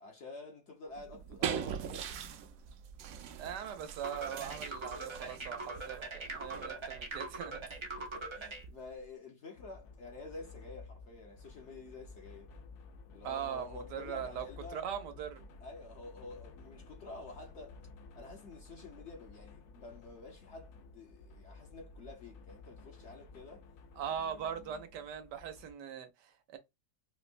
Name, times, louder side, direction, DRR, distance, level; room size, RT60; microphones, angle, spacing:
voice 1, 0.0-2.2 6.3-6.6 8.0-12.5 13.1-14.9 15.6-17.8 18.1-23.7 24.1-24.8, left 3 dB, 50° left, 1.0 m, -49 dB
sound 1, 0.9-9.0, right 8 dB, 70° right, 0.9 m, -43 dB
voice 2, 3.4-7.7 13.2-14.5 14.7-15.4 24.0-26.6, right 8 dB, 85° right, 1.4 m, -40 dB
sound 2, 4.0-8.6, right 3 dB, 45° right, 0.3 m, -42 dB
sound 3, 9.6-25.7, left 4 dB, 75° left, 1.1 m, -53 dB
4.5 x 2.1 x 2.4 m
omnidirectional pair, 1.7 m